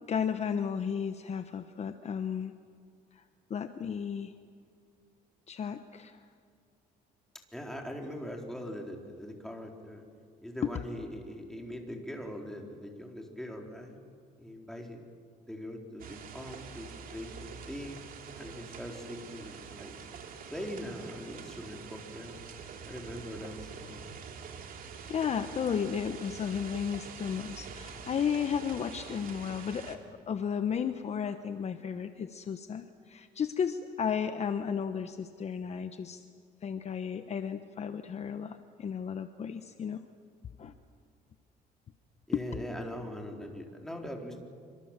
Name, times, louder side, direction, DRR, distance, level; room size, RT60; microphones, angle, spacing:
voice 1, 0.0-2.5 3.2-3.3 3.5-4.3 5.5-6.2 10.6-10.7 25.1-30.0 30.3-36.2 36.6-40.0 40.6-40.7 42.3-42.4, left 7 dB, 40° left, 9 dB, 1.1 m, -33 dB
voice 2, 7.5-10.0 10.4-14.0 14.4-15.0 15.5-18.0 18.4-19.9 20.5-22.4 22.8-24.1 42.3-44.4, equal, 5° left, 1 dB, 4.1 m, -41 dB
sound 1, 16.0-30.0, right 6 dB, 55° right, 2.9 m, -45 dB
27.0 x 25.0 x 7.5 m, 2.2 s
cardioid pair, 110°, 17 cm